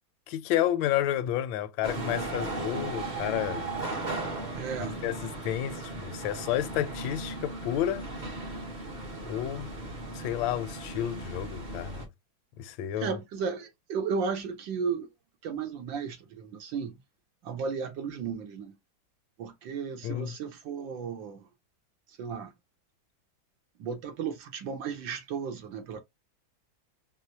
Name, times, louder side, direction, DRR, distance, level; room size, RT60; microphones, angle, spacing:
voice 1, 0.3-3.7 5.0-8.1 9.3-9.7 10.1-12.0 12.6-13.1 20.0-20.3, left 12 dB, 80° left, 1.3 m, -31 dB
sound 1, 1.8-12.1, right 2 dB, 30° right, 0.9 m, -36 dB
voice 2, 4.5-5.0 13.0-15.1 15.4-17.0 17.4-18.8 19.4-21.4 22.2-22.5 23.8-26.0, right 6 dB, 75° right, 1.7 m, -34 dB
4.9 x 2.1 x 2.7 m
omnidirectional pair, 2.1 m